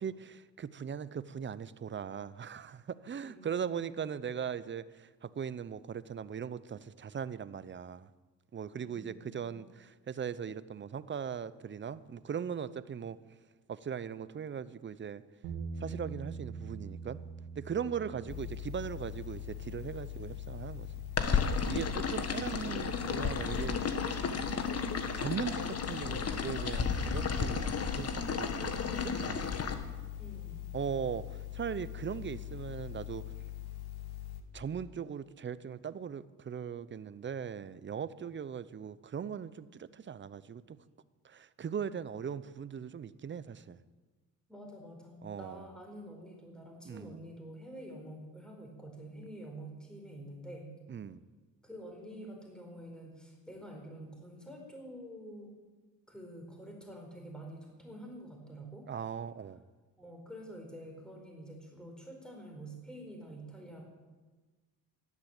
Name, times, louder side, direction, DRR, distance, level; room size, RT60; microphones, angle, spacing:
voice 1, 0.0-8.1 8.5-13.2 13.7-15.2 15.8-17.2 17.6-20.9 21.7-24.2 25.2-29.7 30.7-33.2 34.5-40.8 41.2-43.8 45.2-45.7 46.8-47.2 50.9-51.2 58.9-59.6, right 7 dB, 30° right, 17 dB, 0.7 m, -39 dB
voice 2, 3.2-3.9 8.7-9.5 30.2-30.7 44.5-50.7 51.6-55.5 56.1-58.9 60.0-63.8, right 1 dB, ahead, 1 dB, 4.5 m, -48 dB
sound 1, 15.4-21.7, right 4 dB, 85° right, 2.1 m, -45 dB
sound 2, 18.3-34.4, left 14 dB, 90° left, 1.5 m, -43 dB
sound 3, 21.2-29.7, left 5 dB, 40° left, 1.6 m, -33 dB
13.0 x 11.0 x 8.9 m, 1.3 s
cardioid pair, 100°, 38 cm